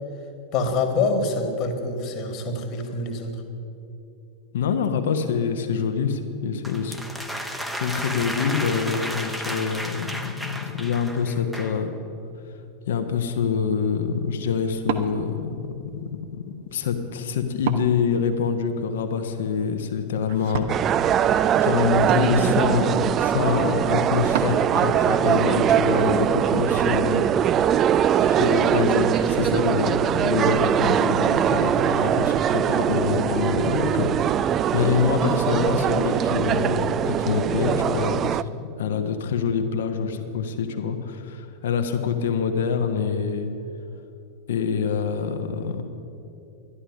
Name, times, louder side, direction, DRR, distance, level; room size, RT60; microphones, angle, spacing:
voice 1, 0.5-3.3, left 3 dB, 40° left, 4 dB, 1.7 m, -25 dB
voice 2, 4.5-11.9 12.9-20.7 21.6-27.3 28.2-38.5 38.8-43.5 44.5-45.9, left 6 dB, 60° left, 7 dB, 1.1 m, -26 dB
sound 1, 6.6-11.8, equal, ahead, 0.9 m, -33 dB
Wood, 13.2-24.7, right 7 dB, 55° right, 0.8 m, -36 dB
sound 2, 20.7-38.4, right 9 dB, 30° right, 0.3 m, -22 dB
11.5 x 11.5 x 6.3 m, 2.7 s
figure-of-eight pair, 90°, 0 cm